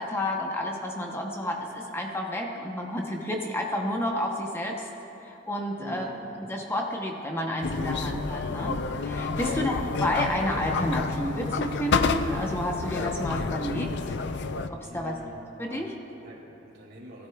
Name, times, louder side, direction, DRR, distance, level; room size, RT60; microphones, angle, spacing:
voice 1, 0.0-4.8 5.2-6.1 6.5-9.7 10.0-14.2 14.7-15.1 15.6-15.9, left 1 dB, 10° left, 1 dB, 0.7 m, -30 dB
voice 2, 5.8-6.2 9.4-9.7 14.8-15.4 15.7-17.3, equal, 60° right, -2 dB, 2.3 m, -45 dB
sound 1, 7.6-14.7, left 4 dB, 60° left, 0.4 m, -29 dB
18.0 x 12.5 x 2.3 m, 2.9 s
head